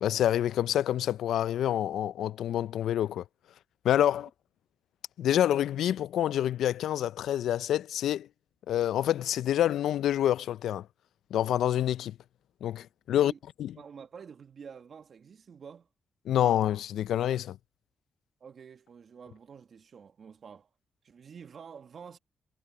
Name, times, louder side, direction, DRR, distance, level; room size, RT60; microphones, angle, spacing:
voice 1, 0.0-3.2 3.8-4.3 5.2-8.3 8.7-10.9 11.3-12.2 12.6-13.3 13.6-13.7 16.3-17.6, left 11 dB, 80° left, 0.5 m, -27 dB
voice 2, 13.8-15.9 18.4-20.7 21.0-22.2, right 6 dB, 60° right, 1.8 m, -48 dB
supercardioid pair, 50°, 0 cm